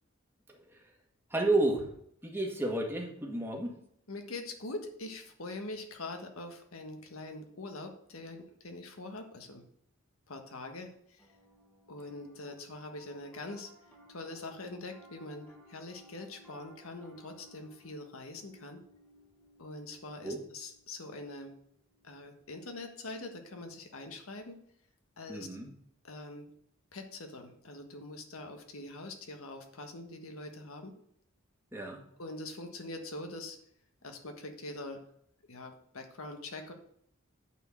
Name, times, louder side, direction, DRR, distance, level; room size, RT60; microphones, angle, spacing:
voice 1, 0.5-0.9 1.3-1.9 2.2-3.8 20.2-20.4 25.3-25.7 31.7-32.0, right 2 dB, 10° right, 0 dB, 1.8 m, -31 dB
voice 2, 4.1-9.6 10.3-11.2 11.9-13.7 14.1-18.8 19.6-21.5 22.0-24.6 25.2-25.5 26.0-26.5 26.9-30.9 32.2-33.6 34.0-35.0 35.5-36.7, left 2 dB, 85° left, 5 dB, 1.5 m, -43 dB
Piano, 11.2-22.7, left 1 dB, 5° left, 1.6 m, -60 dB
9.1 x 4.6 x 7.5 m, 0.68 s
head